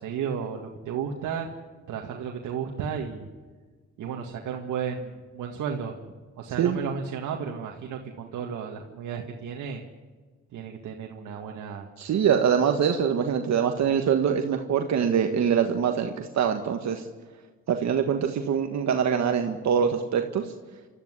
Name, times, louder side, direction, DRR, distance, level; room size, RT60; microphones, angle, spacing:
voice 1, 0.0-1.5 1.9-3.3 4.0-9.8 10.5-11.9, right 7 dB, 80° right, 2 dB, 2.0 m, -33 dB
voice 2, 12.0-17.1 17.7-20.5, right 7 dB, 65° right, 5 dB, 1.6 m, -24 dB
28.5 x 13.5 x 9.8 m, 1.4 s
cardioid pair, 90°, 30 cm